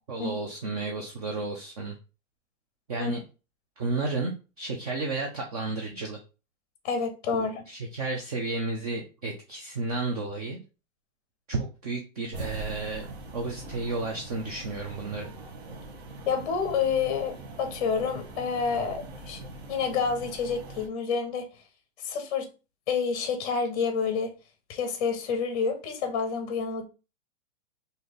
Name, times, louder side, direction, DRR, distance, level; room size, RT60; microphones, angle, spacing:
voice 1, 0.1-1.9 2.9-3.2 3.8-6.2 7.3-10.6 11.5-15.3, right 3 dB, 30° right, 0.5 m, -32 dB
voice 2, 6.8-7.6 16.3-19.4 19.7-21.5 22.0-22.5 22.9-24.3 24.7-26.9, left 5 dB, 30° left, 0.6 m, -28 dB
sound 1, 12.3-20.9, right 2 dB, 55° right, 1.0 m, -42 dB
3.2 x 2.7 x 3.9 m
hypercardioid pair, 170°, 38 cm